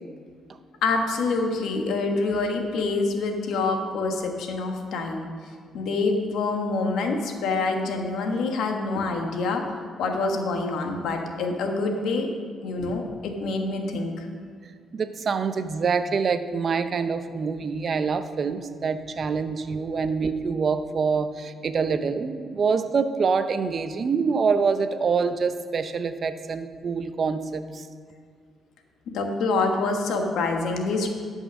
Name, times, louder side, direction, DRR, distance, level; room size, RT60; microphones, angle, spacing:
voice 1, 0.8-5.3 5.7-9.6 10.0-12.3 12.6-14.3 29.1-31.1, left 3 dB, 80° left, 3 dB, 1.3 m, -26 dB
voice 2, 14.9-27.8, right 5 dB, 45° right, 10 dB, 0.6 m, -25 dB
12.0 x 5.5 x 6.1 m, 2.1 s
cardioid pair, 90°, 0 cm